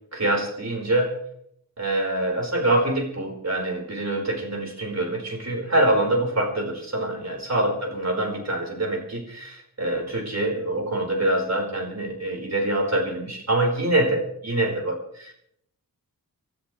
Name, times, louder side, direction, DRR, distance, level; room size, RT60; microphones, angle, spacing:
voice 1, 0.1-1.1 1.8-15.3, right 1 dB, 45° right, 1 dB, 5.0 m, -25 dB
29.0 x 13.0 x 3.4 m, 0.72 s
wide cardioid pair, 105°, 36 cm